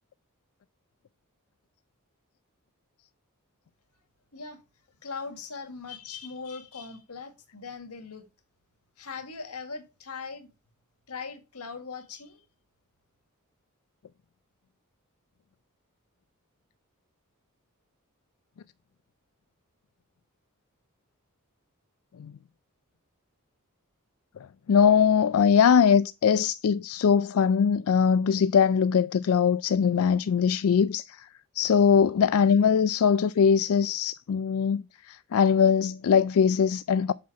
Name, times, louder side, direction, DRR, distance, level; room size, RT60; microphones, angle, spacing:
voice 1, 5.0-8.2 9.0-10.5 11.1-12.4, left 4 dB, 90° left, 1.8 m, -40 dB
voice 2, 24.7-31.3 31.5-37.1, left 7 dB, 65° left, 0.3 m, -21 dB
7.6 x 5.7 x 4.7 m
head